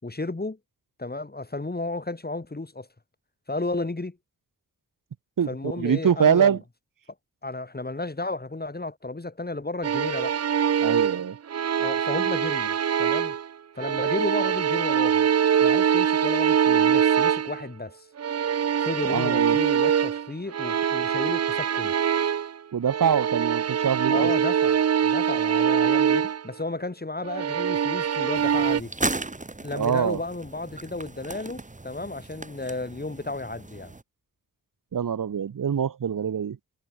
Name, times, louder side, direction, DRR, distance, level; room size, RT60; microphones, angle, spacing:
voice 1, 0.0-0.6 1.0-2.9 3.5-4.2 5.5-6.6 7.4-10.4 11.8-13.4 13.7-15.3 15.6-18.1 18.8-21.9 24.1-28.9 29.6-33.9, left 2 dB, 25° left, 6.3 m, -33 dB
voice 2, 5.4-6.6 10.8-11.4 19.1-19.6 22.7-24.3 29.7-30.2 34.9-36.6, right 8 dB, 65° right, 1.3 m, -24 dB
sound 1, 9.8-13.5 13.8-17.7 18.2-22.6 22.9-26.4 27.2-28.8, right 8 dB, 45° right, 0.6 m, -23 dB
sound 2, 28.4-34.0, right 2 dB, 20° right, 1.9 m, -36 dB
cardioid pair, 75°, 35 cm